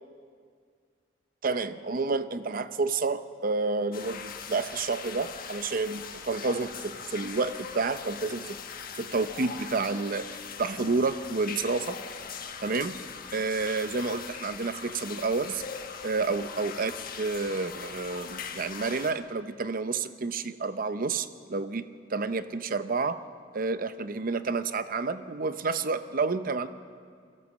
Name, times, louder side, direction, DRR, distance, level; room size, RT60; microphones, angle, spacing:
voice 1, 1.4-8.6 9.0-10.3 10.6-12.0 12.6-13.0 13.3-15.6 16.0-23.2 23.5-26.7, right 4 dB, 50° right, 11 dB, 0.7 m, -30 dB
sound 1, 3.9-19.1, left 6 dB, 50° left, 1.4 m, -41 dB
23.5 x 15.5 x 7.4 m, 2.1 s
head